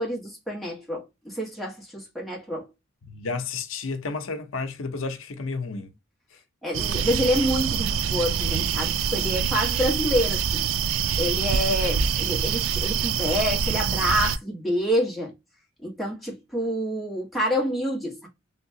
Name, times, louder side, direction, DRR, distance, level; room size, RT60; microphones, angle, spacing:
voice 1, 0.0-2.7 6.6-10.6 11.2-15.3 15.8-18.3, equal, ahead, 1.5 m, -27 dB
voice 2, 3.1-5.9, left 4 dB, 80° left, 0.7 m, -31 dB
sound 1, 6.7-14.4, right 7 dB, 90° right, 0.3 m, -25 dB
3.5 x 2.8 x 2.7 m
head